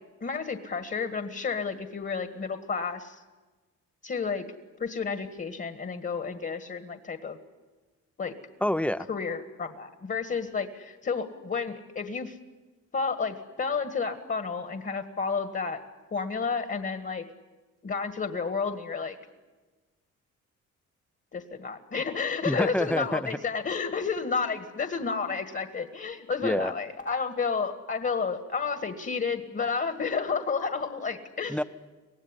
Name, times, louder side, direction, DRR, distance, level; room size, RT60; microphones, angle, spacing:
voice 1, 0.2-3.2 4.0-4.4 4.8-7.4 8.2-8.3 9.1-12.4 12.9-15.8 16.1-17.3 17.8-19.2 21.3-31.6, left 5 dB, 35° left, 8 dB, 1.8 m, -31 dB
voice 2, 8.6-9.1 22.4-23.3 26.4-26.7 31.5-31.6, left 1 dB, 5° left, 14 dB, 0.8 m, -27 dB
24.5 x 18.0 x 9.9 m, 1.3 s
cardioid pair, 90°, 30 cm